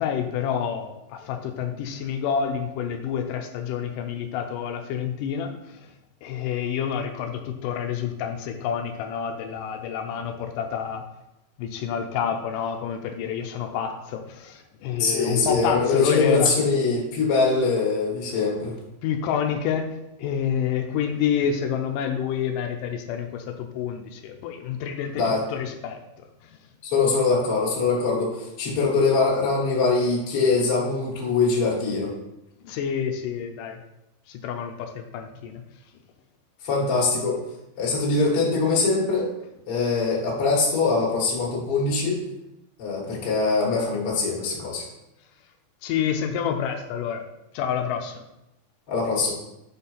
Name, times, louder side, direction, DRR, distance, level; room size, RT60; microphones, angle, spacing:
voice 1, 0.0-5.9 6.2-11.0 11.6-16.5 19.0-19.9 20.2-26.6 32.6-33.8 34.3-35.6 45.8-47.2 47.5-48.2, left 8 dB, 80° left, 4 dB, 1.9 m, -28 dB
voice 2, 15.0-18.7 25.1-25.4 26.8-32.1 36.6-37.4 37.8-39.3 39.7-42.2 42.8-44.9 48.9-49.3, left 4 dB, 45° left, -5 dB, 2.1 m, -23 dB
7.1 x 4.2 x 5.6 m, 0.90 s
omnidirectional pair, 4.5 m